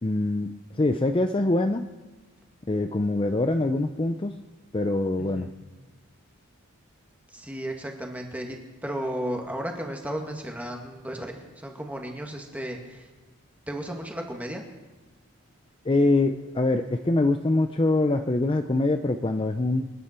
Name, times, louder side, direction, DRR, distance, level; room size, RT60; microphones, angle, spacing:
voice 1, 0.0-1.9 2.7-4.4 4.7-5.5 15.8-19.9, left 2 dB, 25° left, 7 dB, 0.5 m, -24 dB
voice 2, 5.2-5.5 7.3-13.1 13.7-14.6, equal, 5° right, 2 dB, 1.8 m, -34 dB
26.0 x 11.0 x 4.4 m, 1.2 s
head